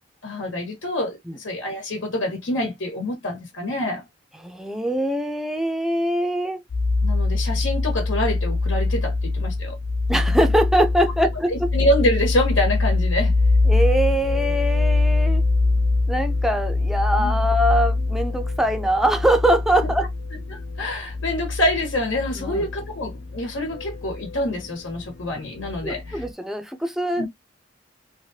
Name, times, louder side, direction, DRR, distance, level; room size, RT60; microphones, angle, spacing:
voice 1, 0.2-4.0 7.0-9.8 11.5-13.3 17.2-17.4 20.3-26.2 27.1-27.3, left 1 dB, 90° left, 1.3 m, -26 dB
voice 2, 4.4-6.6 10.1-11.7 13.7-15.4 16.1-20.1 22.3-22.6 25.8-27.3, right 1 dB, ahead, 0.5 m, -23 dB
sound 1, 6.7-26.3, left 3 dB, 60° left, 0.5 m, -23 dB
3.2 x 2.5 x 2.6 m
head